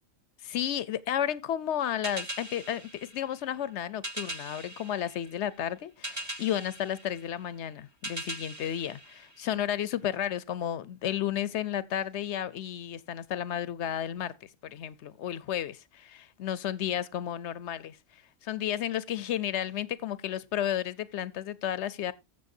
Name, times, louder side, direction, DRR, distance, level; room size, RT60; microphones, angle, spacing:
voice 1, 0.4-2.8 3.1-18.0 18.4-22.1, left 10 dB, 70° left, 0.9 m, -32 dB
sound 1, 2.0-9.9, right 1 dB, 15° right, 0.9 m, -42 dB
14.0 x 7.5 x 2.7 m
omnidirectional pair, 1.3 m